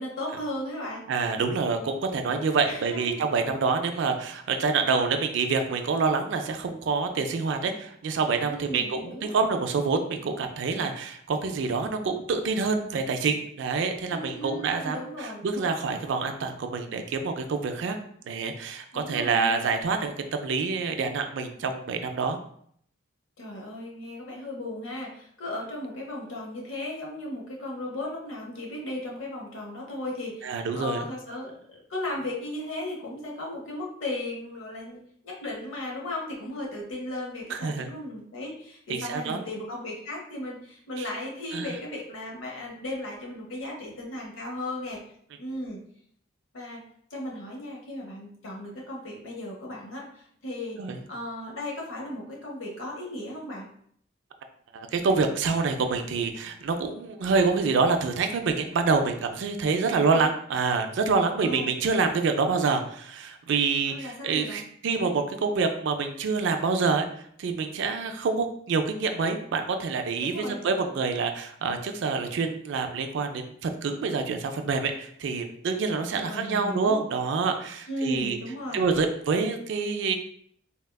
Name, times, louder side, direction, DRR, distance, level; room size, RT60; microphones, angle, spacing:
voice 1, 0.0-1.0 2.6-3.2 8.5-9.3 14.1-15.5 18.9-19.7 23.4-35.0 35.2-45.0 45.4-45.8 46.5-46.8 47.1-50.8 51.1-53.7 59.8-60.3 61.4-61.7 63.9-64.6 70.2-70.6 76.2-77.0 77.9-78.9, left 1 dB, 80° left, -2 dB, 0.8 m, -36 dB
voice 2, 1.1-18.0 18.3-22.4 30.4-31.0 37.5-37.9 38.9-39.4 41.0-41.1 41.5-41.7 50.8-51.0 54.7-67.1 67.4-78.4 78.7-80.1, right 4 dB, 65° right, 6 dB, 0.3 m, -27 dB
3.4 x 2.2 x 2.2 m, 0.65 s
head